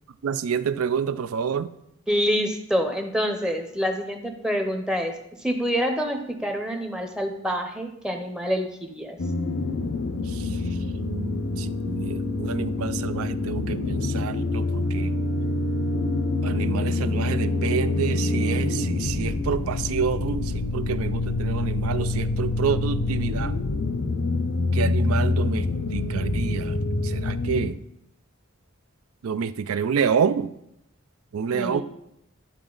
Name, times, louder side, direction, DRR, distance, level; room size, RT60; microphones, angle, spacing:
voice 1, 0.2-1.7 10.3-10.6 11.6-15.2 16.4-23.5 24.7-25.7 25.9-27.8 29.2-30.5 31.3-31.8, right 7 dB, 90° right, 14 dB, 0.4 m, -28 dB
voice 2, 2.1-5.1 5.4-9.2 31.5-31.8, equal, 5° right, 4 dB, 0.6 m, -26 dB
sound 1, 9.2-27.7, left 2 dB, 80° left, 0.6 m, -26 dB
11.5 x 4.0 x 3.9 m, 0.80 s
head